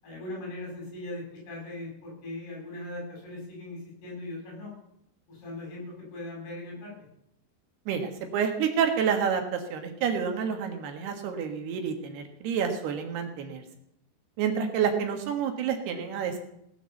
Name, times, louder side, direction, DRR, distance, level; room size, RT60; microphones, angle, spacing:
voice 1, 0.0-4.7 5.3-6.9, left 2 dB, 70° left, -3 dB, 8.9 m, -39 dB
voice 2, 7.9-13.6 14.4-16.4, right 7 dB, 75° right, 5 dB, 3.5 m, -29 dB
18.0 x 7.1 x 7.1 m, 0.75 s
omnidirectional pair, 4.7 m